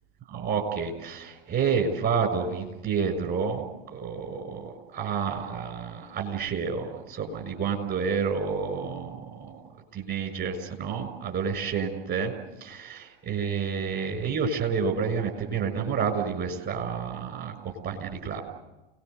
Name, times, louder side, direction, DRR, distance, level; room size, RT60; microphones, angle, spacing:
voice 1, 0.3-9.6 9.9-12.3 12.6-18.4, right 6 dB, 35° right, 5 dB, 6.3 m, -29 dB
29.5 x 19.5 x 8.2 m, 1.1 s
figure-of-eight pair, 85°, 30 cm